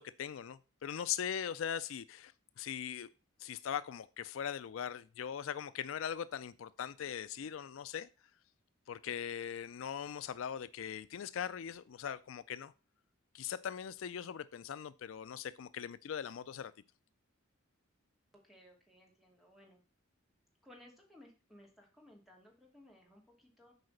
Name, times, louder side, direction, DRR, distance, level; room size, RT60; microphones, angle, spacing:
voice 1, 0.0-2.3 2.6-3.1 3.4-8.1 8.9-12.7 13.3-16.7, left 8 dB, 65° left, 0.4 m, -40 dB
voice 2, 18.4-19.8 20.6-23.7, left 1 dB, ahead, 2.4 m, -60 dB
8.1 x 4.8 x 6.5 m
head